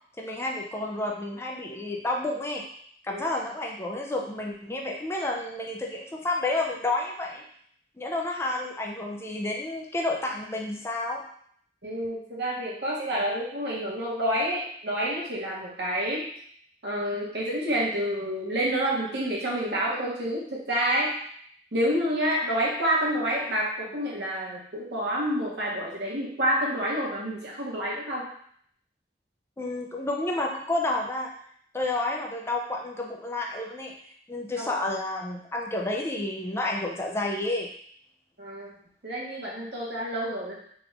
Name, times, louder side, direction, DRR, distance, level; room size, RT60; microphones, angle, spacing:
voice 1, 0.2-2.6 3.0-7.4 8.0-11.2 29.6-31.3 31.7-33.9 34.3-37.7, left 2 dB, 15° left, 0 dB, 0.3 m, -30 dB
voice 2, 11.8-16.3 16.8-21.1 21.7-28.3 34.6-34.7 38.4-38.7 39.0-40.6, equal, 65° right, -4 dB, 1.0 m, -28 dB
3.4 x 2.4 x 3.2 m, 0.63 s
head